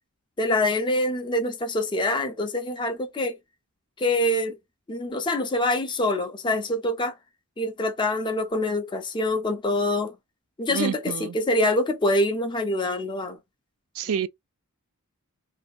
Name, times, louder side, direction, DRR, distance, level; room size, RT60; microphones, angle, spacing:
voice 1, 0.4-3.4 4.0-4.6 4.9-7.1 7.6-10.2 10.6-13.4, left 1 dB, 20° left, 0.4 m, -25 dB
voice 2, 10.7-11.4 13.9-14.3, right 8 dB, 70° right, 0.3 m, -28 dB
2.6 x 2.2 x 2.3 m
head